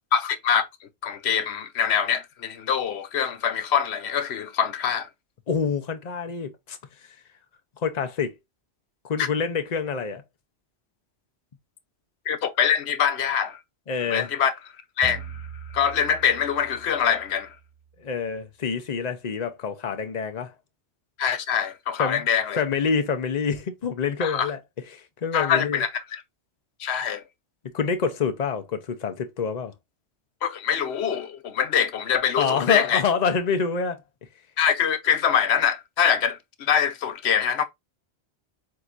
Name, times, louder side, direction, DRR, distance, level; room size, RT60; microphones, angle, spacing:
voice 1, 0.1-0.7 1.0-5.1 9.2-9.3 12.3-13.6 14.1-14.5 15.0-15.4 15.7-17.5 21.2-22.6 24.2-24.5 25.3-26.2 26.8-27.2 30.4-33.0 34.6-37.6, left 8 dB, 75° left, 1.0 m, -24 dB
voice 2, 5.5-7.1 7.8-8.3 9.0-10.2 13.9-14.3 18.0-20.5 22.0-22.3 22.6-24.6 24.9-25.8 27.7-29.7 32.4-34.0, left 6 dB, 45° left, 0.8 m, -26 dB
sound 1, 15.0-17.8, right 7 dB, 5° left, 2.2 m, -41 dB
7.6 x 2.8 x 2.5 m
omnidirectional pair, 1.1 m